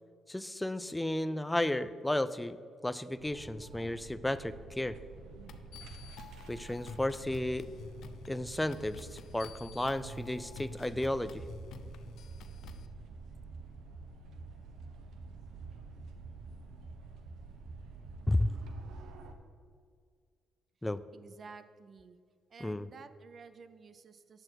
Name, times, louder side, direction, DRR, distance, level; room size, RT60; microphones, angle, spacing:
voice 1, 0.3-2.6 2.8-5.0 6.5-7.7 8.3-11.4 18.3-18.6 20.8-21.0 22.6-22.9, left 1 dB, 10° left, 14 dB, 0.4 m, -33 dB
sound 1, 3.2-19.3, right 4 dB, 80° right, 0.9 m, -48 dB
sound 2, 5.5-12.9, left 6 dB, 75° left, 0.6 m, -50 dB
voice 2, 21.1-22.2 22.5-24.4, right 5 dB, 45° right, 12 dB, 0.6 m, -52 dB
9.6 x 7.6 x 4.6 m, 2.1 s
cardioid pair, 90°, 0 cm